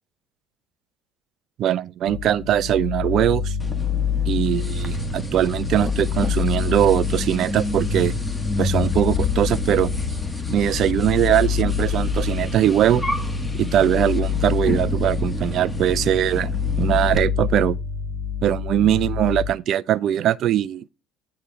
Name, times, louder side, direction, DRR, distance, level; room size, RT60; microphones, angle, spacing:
voice 1, 1.6-3.5 4.3-8.2 8.6-9.9 10.5-13.0 13.5-16.5 16.8-17.8 18.4-20.8, right 11 dB, 50° right, 0.4 m, -21 dB
sound 1, 2.1-19.5, left 6 dB, 70° left, 1.5 m, -27 dB
sound 2, 3.6-17.2, left 2 dB, 10° left, 1.2 m, -30 dB
9.6 x 3.6 x 4.6 m
figure-of-eight pair, 60°, 0 cm